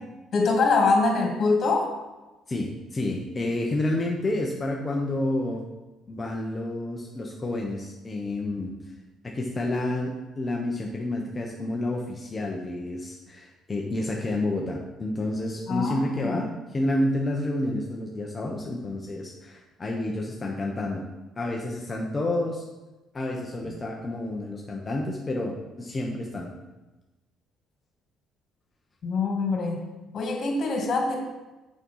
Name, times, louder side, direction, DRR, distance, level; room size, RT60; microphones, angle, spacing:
voice 1, 0.3-1.9 15.7-16.5 29.0-29.8 30.1-31.2, left 3 dB, 45° left, 1 dB, 2.3 m, -24 dB
voice 2, 2.5-5.6 6.1-8.7 9.2-21.0 21.4-22.6 23.1-26.5, left 1 dB, 25° left, 0 dB, 1.0 m, -29 dB
6.6 x 6.3 x 5.6 m, 1.1 s
cardioid pair, 110°, 0 cm